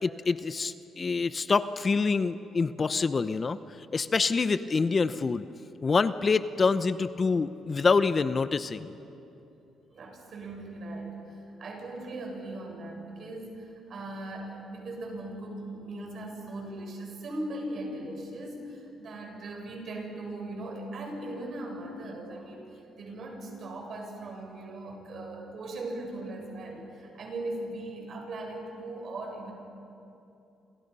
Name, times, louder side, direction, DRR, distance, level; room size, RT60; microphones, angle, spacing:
voice 1, 0.0-3.6 3.9-5.5 5.8-8.9, left 4 dB, 35° left, 12 dB, 0.8 m, -26 dB
voice 2, 9.9-29.5, right 2 dB, 60° right, 1 dB, 7.0 m, -39 dB
29.5 x 27.5 x 5.5 m, 2.8 s
cardioid pair, 90°, 0 cm